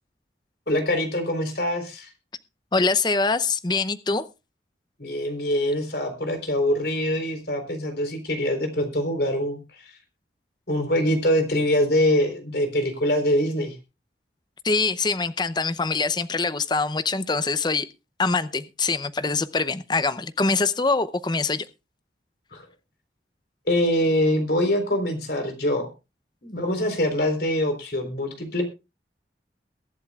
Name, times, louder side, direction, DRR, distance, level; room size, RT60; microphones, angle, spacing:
voice 1, 0.7-2.1 5.0-9.6 10.7-13.7 22.5-22.6 23.7-25.9 26.4-28.6, left 1 dB, 60° left, 6 dB, 3.9 m, -24 dB
voice 2, 2.7-4.2 14.6-17.9 18.2-21.7, left 3 dB, 25° left, 14 dB, 0.6 m, -24 dB
22.0 x 11.0 x 2.4 m, 0.27 s
head